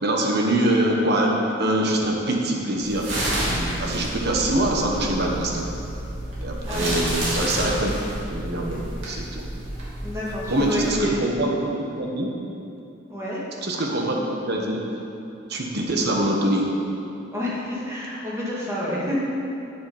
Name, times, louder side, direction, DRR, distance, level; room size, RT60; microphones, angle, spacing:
voice 1, 0.0-5.7 6.4-7.9 8.3-9.4 10.5-12.3 13.6-14.2 14.4-14.8 15.5-16.7, right 1 dB, 60° right, 0 dB, 1.3 m, -24 dB
sound 1, 2.8-10.9, right 1 dB, 85° right, 2.5 m, -30 dB
voice 2, 6.7-7.0 7.5-7.6 10.0-11.2 13.1-13.4 17.3-19.2, left 1 dB, 15° right, -7 dB, 2.1 m, -29 dB
9.4 x 7.4 x 5.4 m, 2.7 s
head